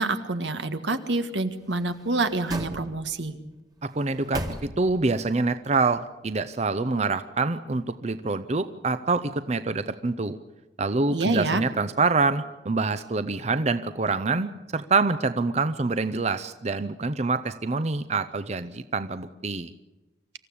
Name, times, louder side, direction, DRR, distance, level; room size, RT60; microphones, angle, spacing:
voice 1, 0.0-3.4 11.1-11.6, right 2 dB, 85° right, 9 dB, 1.6 m, -27 dB
sound 1, 1.6-3.3 3.9-5.2 5.5-5.6, right 1 dB, 20° right, 1.6 m, -37 dB
voice 2, 3.8-10.4 10.8-19.7, right 3 dB, 40° right, 12 dB, 0.7 m, -26 dB
26.0 x 14.5 x 8.5 m, 1.1 s
head